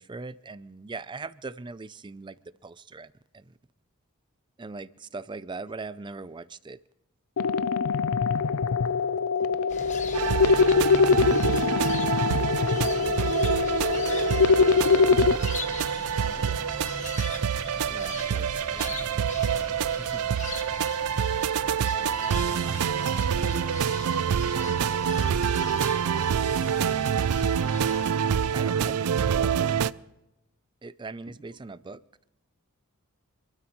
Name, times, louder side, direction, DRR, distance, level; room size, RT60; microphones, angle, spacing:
voice 1, 0.0-2.4 2.6-3.5 4.6-6.8 16.2-16.7 17.9-20.2 28.2-29.7 30.8-32.0, right 3 dB, 20° right, 0.4 m, -41 dB
sound 1, 7.4-15.4, left 5 dB, 75° left, 0.5 m, -23 dB
sound 2, 9.7-28.1, left 3 dB, 35° left, 1.2 m, -39 dB
sound 3, 10.1-29.9, right 7 dB, 85° right, 0.4 m, -27 dB
voice 2, 12.7-16.8 31.3-31.4, right 2 dB, 60° right, 3.3 m, -51 dB
27.0 x 12.5 x 3.1 m
head